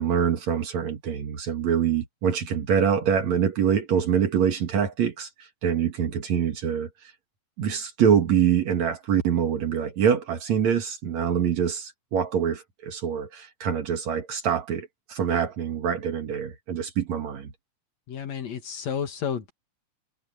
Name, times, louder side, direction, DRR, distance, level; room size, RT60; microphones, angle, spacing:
voice 1, 0.0-7.1 7.6-17.5, right 8 dB, 70° right, 3.0 m, -25 dB
voice 2, 18.1-19.5, left 7 dB, 65° left, 2.8 m, -31 dB
omnidirectional pair, 3.4 m